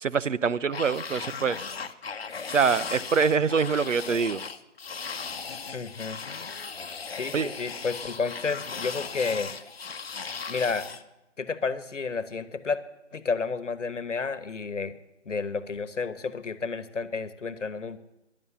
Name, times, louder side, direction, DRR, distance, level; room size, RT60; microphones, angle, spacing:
voice 1, 0.0-1.6 2.5-4.4 7.3-7.5, right 5 dB, 80° right, 17 dB, 0.8 m, -25 dB
sound 1, 0.7-11.0, left 5 dB, 50° left, 0.9 m, -37 dB
voice 2, 5.7-6.2 7.1-9.5 10.5-10.9 11.4-12.8 13.1-15.0 15.2-18.0, left 4 dB, 75° left, 15 dB, 1.2 m, -31 dB
11.5 x 11.0 x 8.4 m, 0.94 s
figure-of-eight pair, 160°, 37 cm